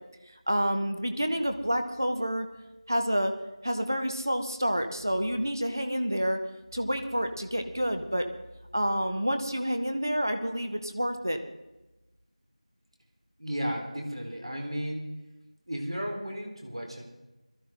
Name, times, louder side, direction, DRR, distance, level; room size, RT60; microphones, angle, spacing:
voice 1, 0.5-2.5 2.9-3.3 3.6-6.4 6.7-8.3 8.7-11.4, equal, 30° right, 7 dB, 1.1 m, -28 dB
voice 2, 13.4-15.1 15.7-17.0, equal, 50° right, 1 dB, 4.1 m, -34 dB
22.0 x 14.0 x 3.9 m, 1.0 s
figure-of-eight pair, 180°, 4 cm